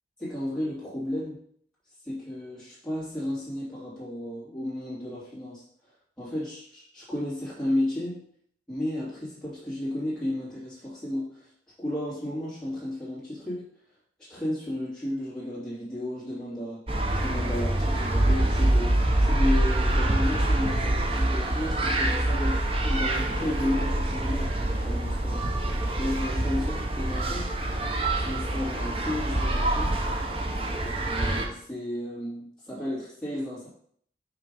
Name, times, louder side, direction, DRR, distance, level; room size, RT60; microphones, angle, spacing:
voice 1, 0.2-1.4 2.0-5.6 6.2-8.2 8.7-11.5 11.8-13.7 14.2-16.8 17.1-25.5 25.9-27.5 28.2-30.0 30.8-33.7, left 1 dB, 5° left, -10 dB, 2.9 m, -33 dB
sound 1, 16.9-31.5, right 1 dB, 30° right, 0.7 m, -25 dB
5.9 x 3.8 x 5.3 m, 0.63 s
head